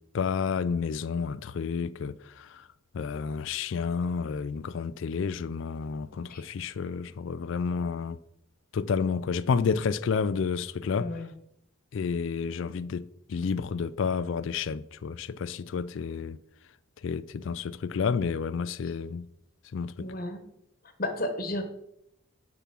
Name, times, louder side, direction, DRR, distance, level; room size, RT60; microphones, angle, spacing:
voice 1, 0.1-2.7 2.9-8.2 8.7-11.1 11.9-16.4 17.0-19.3 19.7-20.1, left 5 dB, 65° left, 0.3 m, -30 dB
voice 2, 11.0-11.3 18.8-18.9 20.0-20.4 21.0-21.6, left 1 dB, 45° left, 1.3 m, -33 dB
6.9 x 6.1 x 5.9 m
head